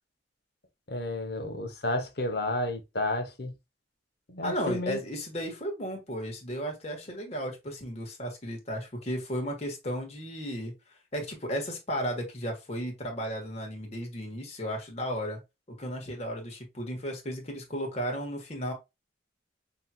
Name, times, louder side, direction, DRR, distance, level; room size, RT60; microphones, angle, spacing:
voice 1, 0.9-3.5 4.3-5.0, left 1 dB, 60° left, 0.9 m, -31 dB
voice 2, 4.4-10.7 11.1-15.4 15.7-18.7, equal, 35° left, 1.3 m, -34 dB
5.5 x 2.9 x 2.2 m
head